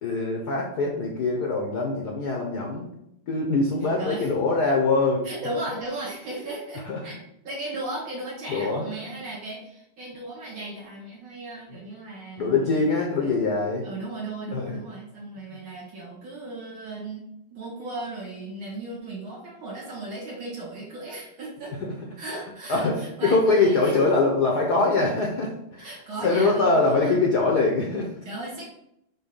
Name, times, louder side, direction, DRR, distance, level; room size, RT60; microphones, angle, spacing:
voice 1, 0.0-2.9 3.3-5.2 6.9-7.0 8.5-8.8 12.4-13.9 14.5-14.8 22.7-25.9 26.2-28.1, left 3 dB, 60° left, 0 dB, 1.2 m, -23 dB
voice 2, 4.0-4.3 5.2-12.9 13.2-13.4 13.8-17.2 17.5-21.7 22.2-24.1 25.8-27.2 28.2-28.7, right 2 dB, 65° right, -5 dB, 2.5 m, -36 dB
6.0 x 3.1 x 5.5 m, 0.79 s
omnidirectional pair, 2.4 m